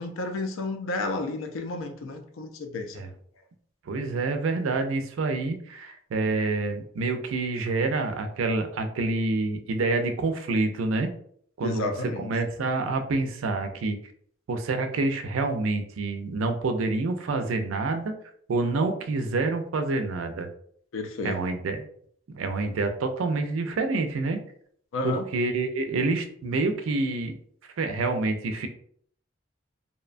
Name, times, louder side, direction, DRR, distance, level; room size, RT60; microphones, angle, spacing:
voice 1, 0.0-3.0 11.6-12.3 20.9-21.4 24.9-25.3, left 2 dB, 85° left, 5 dB, 0.4 m, -31 dB
voice 2, 3.9-11.1 11.6-14.0 14.5-18.1 18.5-20.5 21.2-21.8 22.3-24.4 25.0-27.3 27.8-28.7, right 3 dB, 90° right, 7 dB, 0.4 m, -27 dB
2.7 x 2.2 x 2.4 m, 0.62 s
head